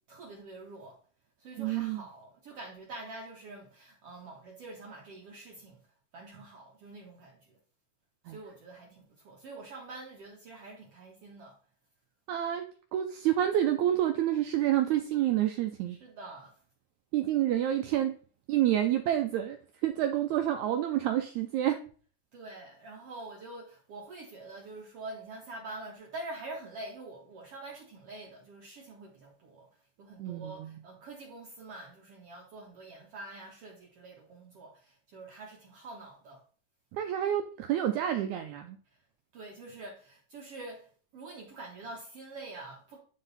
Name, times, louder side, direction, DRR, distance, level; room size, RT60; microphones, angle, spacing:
voice 1, 0.1-1.0 1.4-5.8 6.1-7.6 8.3-11.5 15.8-16.5 22.3-29.7 30.0-36.4 39.3-43.0, right 2 dB, 65° right, 1.6 m, -46 dB
voice 2, 1.6-2.0 8.3-8.4 12.3-12.6 12.9-16.0 17.1-18.1 18.5-19.6 19.8-21.8 30.2-30.7 36.9-38.8, right 12 dB, 85° right, 1.6 m, -28 dB
9.8 x 3.8 x 4.0 m
omnidirectional pair, 3.9 m